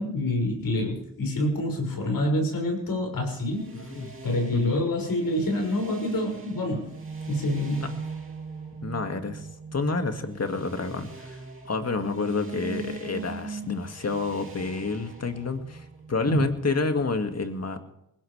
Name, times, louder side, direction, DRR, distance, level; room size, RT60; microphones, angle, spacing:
voice 1, 0.0-3.7 4.2-6.9 7.3-8.0 16.3-16.5, left 1 dB, 65° left, 0 dB, 6.6 m, -27 dB
sound 1, 3.4-17.0, right 4 dB, 35° right, 2.9 m, -41 dB
voice 2, 3.7-4.1 4.5-4.8 7.8-7.9 8.8-9.4 9.7-11.4 11.7-17.8, left 3 dB, 45° left, 7 dB, 2.1 m, -29 dB
20.0 x 17.0 x 3.4 m, 0.82 s
supercardioid pair, 40°, 37 cm